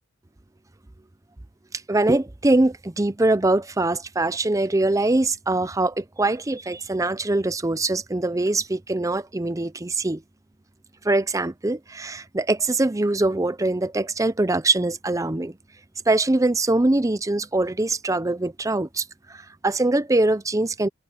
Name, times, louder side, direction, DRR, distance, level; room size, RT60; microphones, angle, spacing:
voice 1, 1.9-10.2 11.0-15.6 16.1-20.9, right 2 dB, 15° right, 0.6 m, -23 dB
head